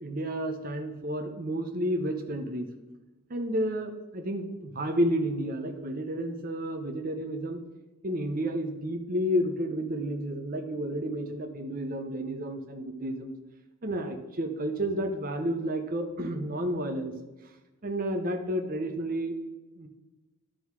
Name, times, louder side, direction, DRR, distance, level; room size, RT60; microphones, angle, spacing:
voice 1, 0.0-2.7 3.3-7.6 8.0-13.3 13.8-17.1 17.8-19.3 19.8-19.9, equal, 40° right, 4 dB, 0.8 m, -31 dB
11.5 x 3.9 x 4.7 m, 1.1 s
head